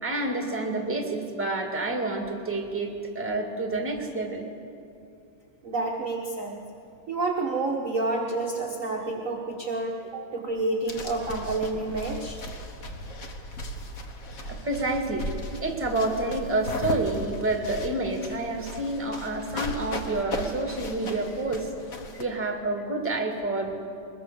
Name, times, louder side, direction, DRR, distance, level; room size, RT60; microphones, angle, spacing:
voice 1, 0.0-4.4 14.4-15.2 15.6-21.7 22.2-23.7, right 2 dB, 5° right, 3 dB, 1.6 m, -28 dB
voice 2, 5.6-6.6 7.1-12.4 22.1-22.2, right 2 dB, 40° right, 0 dB, 1.1 m, -29 dB
sound 1, 10.9-22.2, left 1 dB, 45° left, 1.2 m, -37 dB
22.0 x 21.0 x 6.9 m, 2.5 s
omnidirectional pair, 3.4 m